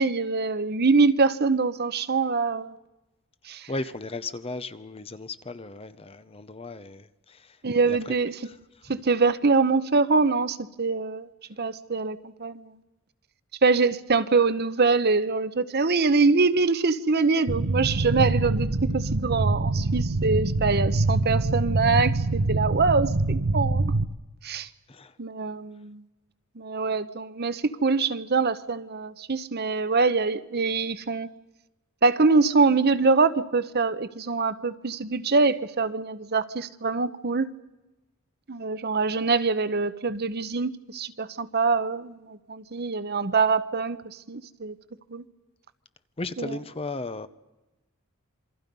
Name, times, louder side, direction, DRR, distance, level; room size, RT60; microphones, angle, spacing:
voice 1, 0.0-2.7 3.5-3.7 7.6-8.3 8.9-11.3 11.6-12.8 13.6-23.9 24.4-24.7 25.2-26.0 26.6-31.3 32.0-37.5 38.5-44.0 44.3-44.7 45.1-45.2 46.4-46.6, right 4 dB, 45° right, 13 dB, 0.9 m, -24 dB
voice 2, 3.7-7.6 7.8-8.2 8.4-8.6 24.9-25.1 46.2-47.3, left 2 dB, 25° left, 13 dB, 0.8 m, -36 dB
sound 1, 17.5-24.1, right 2 dB, 80° right, 1.0 m, -25 dB
27.5 x 23.5 x 5.4 m, 1.1 s
head